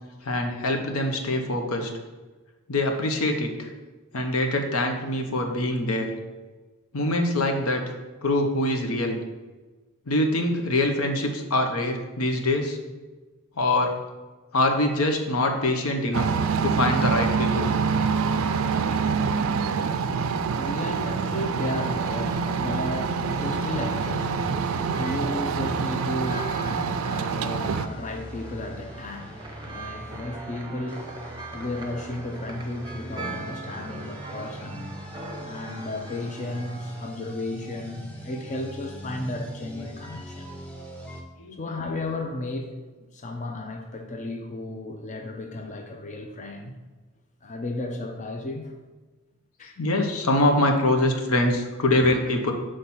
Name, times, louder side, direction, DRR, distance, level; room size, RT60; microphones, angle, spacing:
voice 1, 0.2-1.9 2.7-3.7 4.1-6.1 6.9-7.8 8.2-9.2 10.1-12.8 13.6-13.9 14.5-16.3 16.6-17.7 41.4-41.6 49.8-52.5, left 1 dB, 85° left, 4 dB, 0.9 m, -24 dB
sound 1, 16.1-27.9, right 5 dB, 70° right, 0.3 m, -26 dB
voice 2, 19.6-31.2 31.5-34.9 35.4-40.5 41.5-42.8 43.1-46.8 47.4-48.7 49.6-49.8 52.0-52.1, left 1 dB, 35° left, 3 dB, 0.6 m, -34 dB
sound 2, 22.1-37.1, right 2 dB, 20° right, 0.7 m, -42 dB
sound 3, 23.4-41.2, right 1 dB, 5° left, 0.8 m, -42 dB
6.0 x 3.3 x 5.5 m, 1.3 s
head